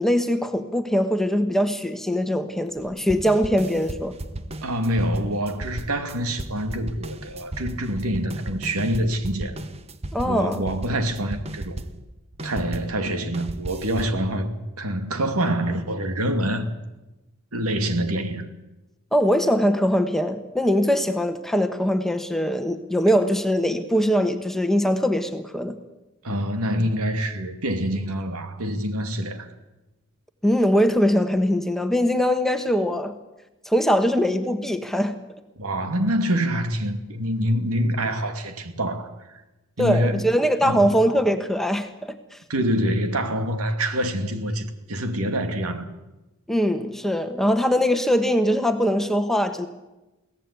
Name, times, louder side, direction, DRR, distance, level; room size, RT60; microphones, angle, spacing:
voice 1, 0.0-4.2 10.1-10.6 19.1-25.8 30.4-33.2 33.6-35.2 39.8-42.4 46.5-49.7, equal, ahead, 7 dB, 1.3 m, -22 dB
sound 1, 2.8-12.9 13.3-14.2, right 1 dB, 30° right, 1.0 m, -35 dB
voice 2, 4.6-9.6 10.2-11.8 12.4-16.7 17.5-18.5 26.2-29.5 35.6-39.4 39.8-40.2 40.6-41.0 42.5-45.9, equal, 90° right, 7 dB, 2.5 m, -26 dB
23.0 x 17.0 x 8.4 m, 1.0 s
head